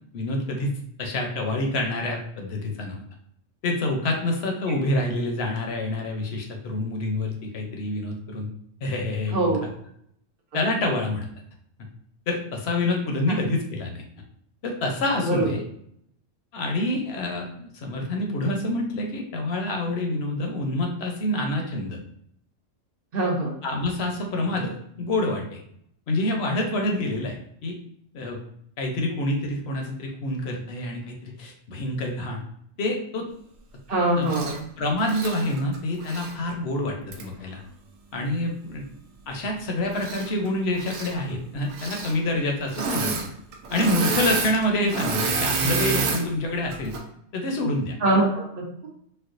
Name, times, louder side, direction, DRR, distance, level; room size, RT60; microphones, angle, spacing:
voice 1, 0.1-0.7 1.0-3.0 3.6-8.5 8.8-9.6 10.5-11.3 12.3-14.0 14.6-15.6 16.5-22.0 23.6-25.6 26.1-27.4 27.6-27.7 28.1-28.4 28.8-32.4 32.8-33.3 34.2-34.3 34.8-37.6 38.1-38.8 39.3-43.3 43.7-46.9 47.3-47.9, left 1 dB, 60° left, 2 dB, 0.8 m, -27 dB
voice 2, 23.1-23.5 33.9-34.6 48.0-48.9, right 2 dB, 50° right, -1 dB, 0.8 m, -23 dB
Engine / Mechanisms, 34.3-34.6 35.0-36.3 37.1-37.2 39.9-40.5 40.7-41.1 41.7-42.2 42.7-43.3 43.5-46.2 46.7-47.0, right 4 dB, 85° right, 1.0 m, -28 dB
4.3 x 2.2 x 2.5 m, 0.68 s
omnidirectional pair, 1.3 m